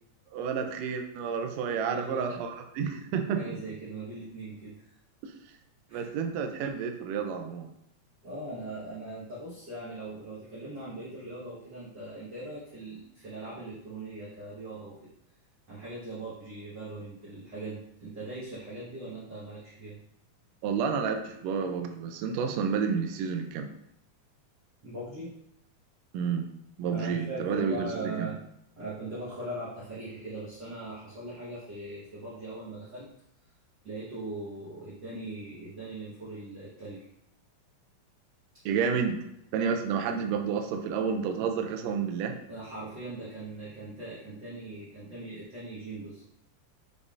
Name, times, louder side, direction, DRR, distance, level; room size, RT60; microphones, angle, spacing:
voice 1, 0.3-3.4 5.2-5.3 5.9-7.7 20.6-23.7 26.1-26.5 26.8-28.3 38.6-39.2 39.5-42.3, right 6 dB, 80° right, 5 dB, 1.5 m, -30 dB
voice 2, 1.8-2.4 3.3-4.9 5.9-6.1 8.2-14.9 15.7-20.0 24.8-25.3 26.9-28.4 28.8-33.1 33.8-37.0 42.5-46.2, right 2 dB, 55° right, -10 dB, 1.2 m, -40 dB
5.2 x 3.8 x 2.4 m, 0.78 s
omnidirectional pair, 3.5 m